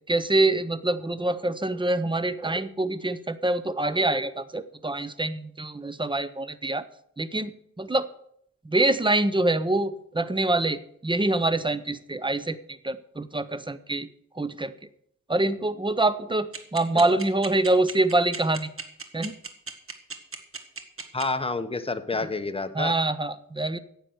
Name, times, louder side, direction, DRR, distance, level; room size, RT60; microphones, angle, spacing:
voice 1, 0.1-6.8 7.2-8.1 8.6-14.1 14.3-14.7 15.3-18.7 19.1-19.3 22.7-23.8, right 2 dB, 15° right, 14 dB, 0.7 m, -25 dB
sound 1, 16.5-21.2, right 4 dB, 40° right, 1.5 m, -35 dB
voice 2, 21.1-22.9, left 3 dB, 15° left, 9 dB, 1.0 m, -29 dB
9.9 x 8.3 x 7.9 m, 0.71 s
wide cardioid pair, 90°, 32 cm